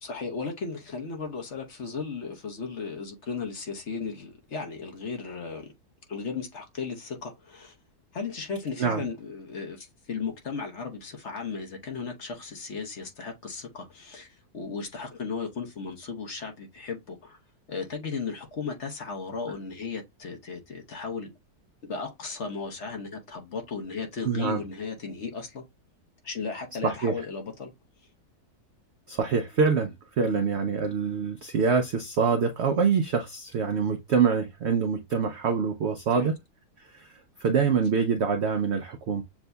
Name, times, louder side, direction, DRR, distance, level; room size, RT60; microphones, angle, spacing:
voice 1, 0.0-5.7 6.1-7.7 8.1-17.4 17.7-21.3 21.8-25.6 26.2-27.7 30.2-30.4 36.1-36.3, left 5 dB, 50° left, 1.1 m, -35 dB
voice 2, 24.2-24.6 26.8-27.1 29.1-36.3 36.9-39.2, right 5 dB, 70° right, 0.6 m, -25 dB
7.1 x 2.6 x 2.2 m
omnidirectional pair, 1.7 m